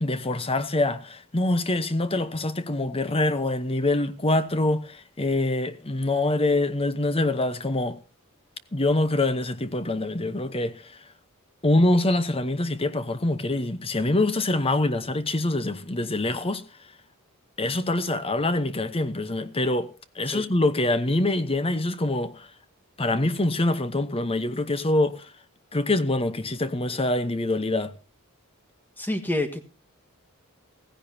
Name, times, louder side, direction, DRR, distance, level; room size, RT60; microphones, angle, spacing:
voice 1, 0.0-8.0 8.7-11.0 11.6-16.6 17.6-22.5 23.0-25.3 25.7-27.9, left 2 dB, 25° left, 1.0 m, -25 dB
voice 2, 29.0-29.7, left 1 dB, 10° left, 1.6 m, -28 dB
15.5 x 15.5 x 2.8 m
head